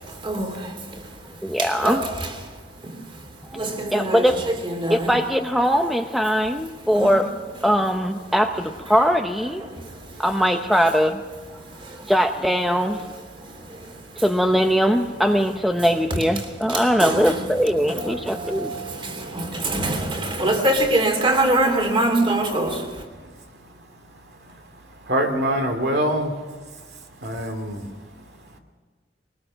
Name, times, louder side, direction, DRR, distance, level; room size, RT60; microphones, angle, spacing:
voice 1, 0.0-5.2 6.9-7.2 7.7-7.8 8.9-9.0 9.4-10.2 10.8-10.9 11.6-12.1 13.3-14.2 16.4-23.1, right 1 dB, 30° right, 3.0 m, -26 dB
voice 2, 1.4-2.0 3.5-3.6 3.9-4.4 4.9-7.3 7.6-9.6 10.2-11.2 12.1-13.0 14.2-18.7, equal, ahead, 0.7 m, -21 dB
voice 3, 25.1-26.3 27.2-27.9, right 1 dB, 70° right, 2.5 m, -23 dB
21.5 x 20.0 x 6.2 m
head